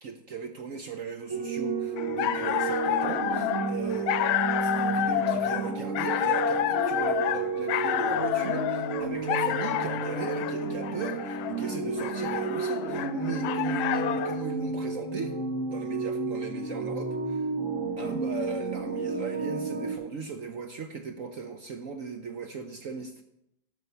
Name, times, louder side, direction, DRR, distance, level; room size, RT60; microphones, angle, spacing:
voice 1, 0.0-4.2 4.6-15.3 15.7-17.5 18.0-23.2, right 5 dB, 70° right, 7 dB, 0.7 m, -38 dB
sound 1, 1.3-19.9, right 3 dB, 45° right, 1.6 m, -31 dB
sound 2, 2.0-14.4, left 10 dB, 85° left, 1.4 m, -29 dB
12.0 x 6.2 x 6.8 m, 0.83 s
omnidirectional pair, 2.2 m